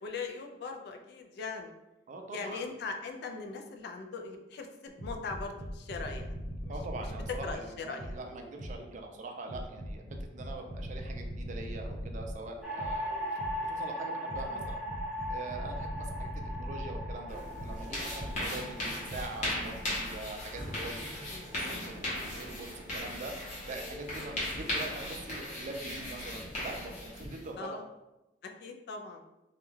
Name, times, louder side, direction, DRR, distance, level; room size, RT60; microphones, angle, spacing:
voice 1, 0.0-1.7 2.3-6.3 6.6-6.7 7.4-8.1 14.4-14.6 21.3-21.6 27.6-27.8 28.4-29.2, left 4 dB, 60° left, 4 dB, 0.3 m, -40 dB
voice 2, 2.1-2.7 6.7-10.0 10.3-13.2 13.7-14.8 15.3-27.8, right 2 dB, 40° right, 3 dB, 0.4 m, -43 dB
sound 1, 5.0-8.9 9.5-13.7 14.3-18.5 19.1-19.2, equal, 85° left, 0.8 m, -40 dB
sound 2, 12.6-22.9, equal, 5° right, 0.6 m, -40 dB
sound 3, 17.3-27.5, left 1 dB, 45° left, 0.8 m, -37 dB
2.2 x 2.2 x 3.1 m, 0.98 s
head